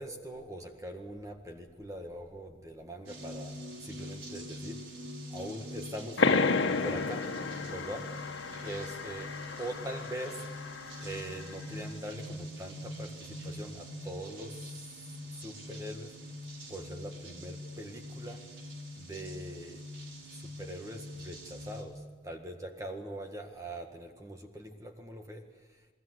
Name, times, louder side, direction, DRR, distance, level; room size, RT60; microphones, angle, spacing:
voice 1, 0.0-3.5 3.8-4.8 5.3-6.2 6.8-7.2 7.7-8.0 8.6-9.3 9.6-10.4 11.0-14.7 15.3-16.1 16.7-18.4 19.0-19.8 20.3-22.0 22.2-25.4, right 1 dB, 15° right, 4 dB, 1.7 m, -42 dB
sound 1, 3.1-21.8, left 1 dB, 90° right, 5.5 m, -44 dB
sound 2, 6.2-11.4, left 4 dB, 80° left, 1.5 m, -32 dB
28.5 x 20.5 x 8.1 m, 1.4 s
head